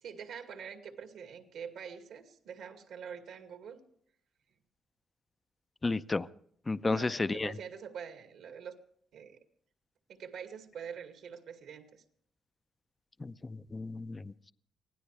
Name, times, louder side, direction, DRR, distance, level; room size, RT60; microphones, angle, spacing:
voice 1, 0.0-3.8 6.8-8.7 9.1-9.4 10.1-12.0, right 7 dB, 75° right, 5 dB, 2.2 m, -45 dB
voice 2, 5.8-6.3 6.7-7.5 13.2-14.5, left 3 dB, 25° left, 14 dB, 0.6 m, -33 dB
24.5 x 16.5 x 3.4 m, 0.66 s
cardioid pair, 90°, 0 cm